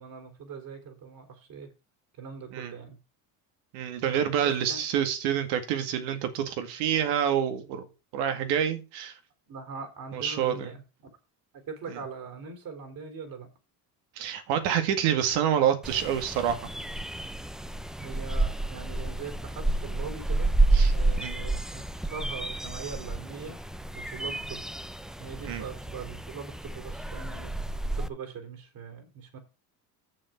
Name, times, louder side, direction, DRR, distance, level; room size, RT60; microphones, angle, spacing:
voice 1, 0.0-1.7 2.2-3.0 4.4-4.8 9.5-10.8 11.7-13.5 17.7-20.5 20.9-23.6 23.9-24.6 25.2-27.5 28.0-29.4, right 5 dB, 60° right, 4 dB, 4.1 m, -41 dB
voice 2, 3.7-7.9 8.1-9.1 10.1-10.7 11.9-12.0 14.2-16.7 20.7-20.9 21.2-21.4 25.5-25.7, right 9 dB, 85° right, 8 dB, 2.1 m, -27 dB
sound 1, 15.8-28.1, right 2 dB, ahead, 0.4 m, -30 dB
7.5 x 7.2 x 5.8 m, 0.30 s
cardioid pair, 115°, 39 cm